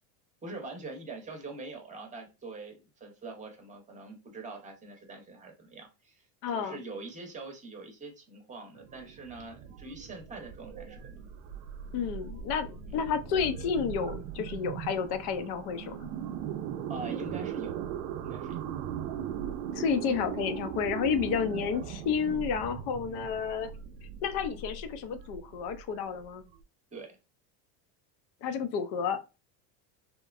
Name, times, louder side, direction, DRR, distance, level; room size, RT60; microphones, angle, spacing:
voice 1, 0.4-6.2 6.5-11.3 12.9-13.0 16.9-17.8 18.2-18.6 23.1-23.3 26.9-27.2, right 3 dB, 15° right, 0.8 m, -44 dB
voice 2, 6.4-6.8 11.9-16.0 19.7-23.7 24.2-26.4 28.4-29.2, left 6 dB, 60° left, 0.6 m, -31 dB
sound 1, 8.8-26.6, right 8 dB, 80° right, 0.6 m, -39 dB
2.9 x 2.1 x 2.4 m
supercardioid pair, 110°, 46 cm